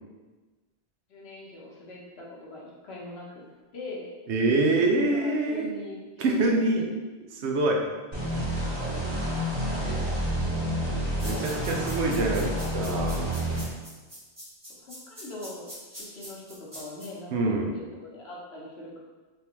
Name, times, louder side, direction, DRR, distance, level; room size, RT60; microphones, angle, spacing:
voice 1, 1.1-3.5 3.7-4.1 5.1-6.9 8.1-8.3 9.9-10.3 10.6-11.1 14.7-17.6 17.9-19.0, left 2 dB, 70° left, -4 dB, 1.1 m, -42 dB
voice 2, 4.3-5.7 6.2-6.8 7.3-7.8 9.8-10.2 11.2-13.3 17.3-17.7, right 2 dB, 85° right, 1 dB, 0.9 m, -25 dB
sound 1, 8.1-13.6, equal, 40° right, 1.2 m, -29 dB
sound 2, 11.2-17.1, equal, 20° right, 1.2 m, -43 dB
3.4 x 3.3 x 2.9 m, 1.3 s
omnidirectional pair, 1.1 m